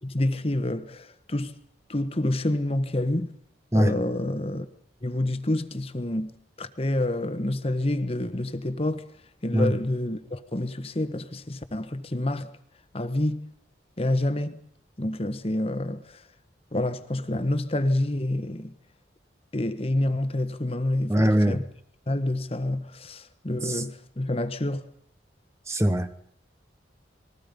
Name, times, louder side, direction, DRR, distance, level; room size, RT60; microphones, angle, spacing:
voice 1, 0.0-1.5 1.9-3.3 3.7-4.7 5.0-6.3 6.6-9.0 9.4-12.5 12.9-13.5 14.0-14.6 15.0-16.2 16.7-18.7 19.5-21.6 22.1-24.9, left 1 dB, 30° left, 1.2 m, -28 dB
voice 2, 21.1-21.6 23.6-23.8 25.7-26.1, equal, 15° right, 0.9 m, -22 dB
28.5 x 21.0 x 5.3 m
head